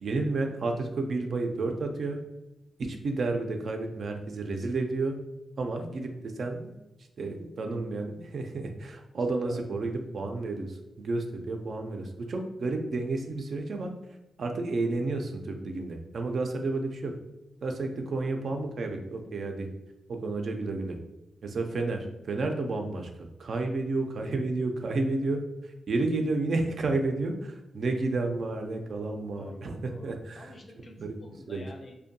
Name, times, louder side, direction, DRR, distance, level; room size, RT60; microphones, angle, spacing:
voice 1, 0.0-2.2 2.8-5.2 5.6-6.7 7.2-13.9 14.4-17.1 17.6-19.7 20.1-21.0 21.4-23.1 23.4-30.4 31.0-31.1 31.5-31.6, right 3 dB, 60° right, 4 dB, 0.3 m, -31 dB
voice 2, 9.4-10.0 29.4-31.9, left 2 dB, 45° left, 2 dB, 0.4 m, -49 dB
2.5 x 2.2 x 2.6 m, 0.94 s
wide cardioid pair, 105°, 0 cm